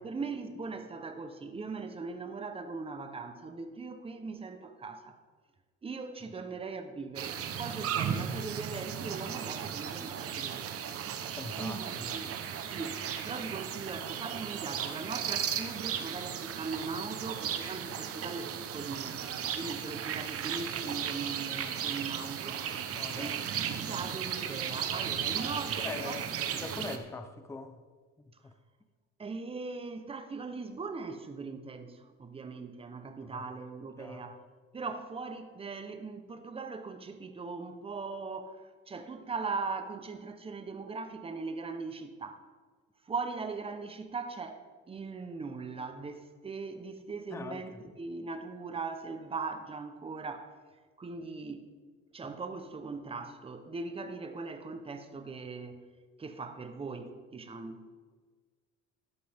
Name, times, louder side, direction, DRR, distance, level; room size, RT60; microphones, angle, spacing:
voice 1, 0.0-5.2 5.8-10.9 11.6-12.3 12.7-19.2 19.5-22.9 23.2-26.5 29.2-34.4 34.7-42.4 43.0-50.6 51.0-51.7 52.1-55.8 56.2-57.9, right 4 dB, 20° right, 0.8 m, -40 dB
sound 1, 7.2-27.0, right 8 dB, 50° right, 0.9 m, -36 dB
voice 2, 11.4-12.2 22.9-23.4 25.8-27.8 28.4-28.5 33.3-33.4 34.0-34.2 47.3-47.6, left 3 dB, 10° left, 0.5 m, -42 dB
12.5 x 11.0 x 3.5 m
cardioid pair, 155°, 29 cm